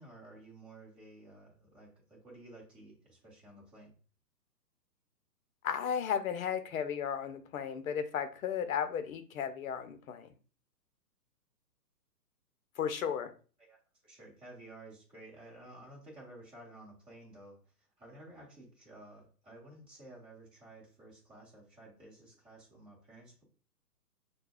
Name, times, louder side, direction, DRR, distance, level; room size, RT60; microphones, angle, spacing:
voice 1, 0.0-3.9 13.6-23.4, right 1 dB, 10° right, -4 dB, 1.2 m, -53 dB
voice 2, 5.6-10.3 12.8-13.3, left 8 dB, 55° left, 9 dB, 0.7 m, -34 dB
6.4 x 2.3 x 2.3 m, 0.38 s
hypercardioid pair, 135°, 49 cm